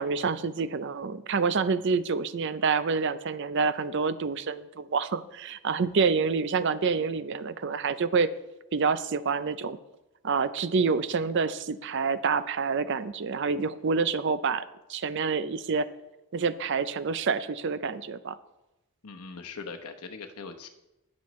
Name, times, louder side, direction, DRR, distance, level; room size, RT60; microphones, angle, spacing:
voice 1, 0.0-8.3 8.7-9.8 10.2-14.6 14.9-15.9 16.3-18.4, right 5 dB, 55° right, 14 dB, 0.5 m, -27 dB
voice 2, 19.0-20.7, left 4 dB, 90° left, 6 dB, 1.0 m, -41 dB
18.5 x 6.3 x 3.1 m, 0.95 s
head